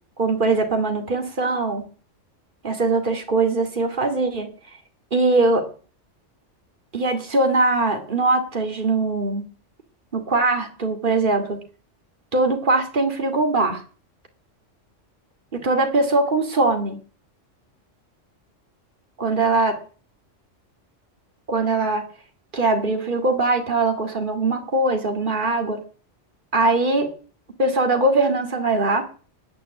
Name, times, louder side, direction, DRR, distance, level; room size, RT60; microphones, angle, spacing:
voice 1, 0.2-1.8 2.6-4.5 5.1-5.6 6.9-9.4 10.1-11.6 12.3-13.8 15.5-17.0 19.2-19.8 21.5-22.1 22.5-25.8 26.5-27.1 27.6-29.1, right 2 dB, 40° right, 4 dB, 2.5 m, -21 dB
13.5 x 9.4 x 8.3 m, 0.41 s
omnidirectional pair, 1.3 m